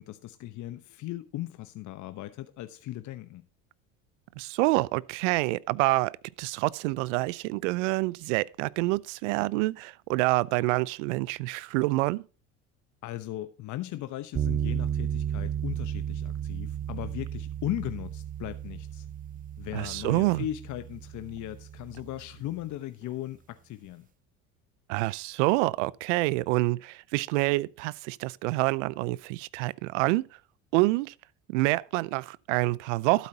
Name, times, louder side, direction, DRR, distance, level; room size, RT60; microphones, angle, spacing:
voice 1, 0.0-3.5 13.0-19.1 19.6-24.1, left 14 dB, 50° left, 1.0 m, -37 dB
voice 2, 4.4-12.2 19.7-20.4 24.9-30.3 30.7-31.1 31.5-33.3, right 21 dB, 75° right, 0.6 m, -27 dB
sound 1, 14.3-22.5, right 9 dB, 25° right, 0.6 m, -34 dB
12.5 x 8.3 x 2.8 m
hypercardioid pair, 80°, 37 cm